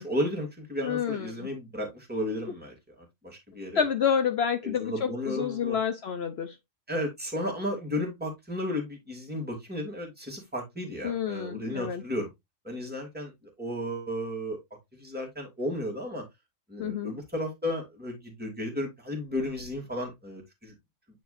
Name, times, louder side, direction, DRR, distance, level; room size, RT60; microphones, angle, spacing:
voice 1, 0.0-3.8 4.6-5.8 6.9-12.3 12.6-14.6 14.9-16.2 16.7-20.7, left 1 dB, 5° right, 2.6 m, -34 dB
voice 2, 0.8-1.5 3.7-6.6 11.0-12.0 16.8-17.1, left 7 dB, 60° left, 0.9 m, -29 dB
9.3 x 4.6 x 2.6 m
omnidirectional pair, 1.3 m